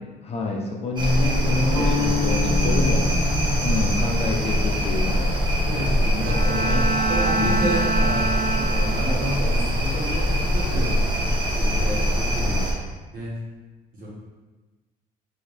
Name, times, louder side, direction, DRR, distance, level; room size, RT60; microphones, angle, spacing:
voice 1, 0.2-3.0 3.6-5.4 6.1-6.3 6.7-6.8 7.4-7.7, left 3 dB, 35° left, -1 dB, 0.6 m, -27 dB
sound 1, 1.0-12.7, equal, 30° right, 0.8 m, -23 dB
Guitar, 1.7-7.7, left 3 dB, 10° right, 1.5 m, -31 dB
voice 2, 2.4-3.6 5.6-8.3 8.6-11.0 11.4-12.7 13.1-13.3 13.9-14.1, right 1 dB, 60° right, -5 dB, 1.4 m, -30 dB
Bowed string instrument, 6.2-9.4, right 3 dB, 80° right, 0.7 m, -26 dB
3.8 x 2.7 x 3.3 m, 1.2 s
cardioid pair, 110°, 17 cm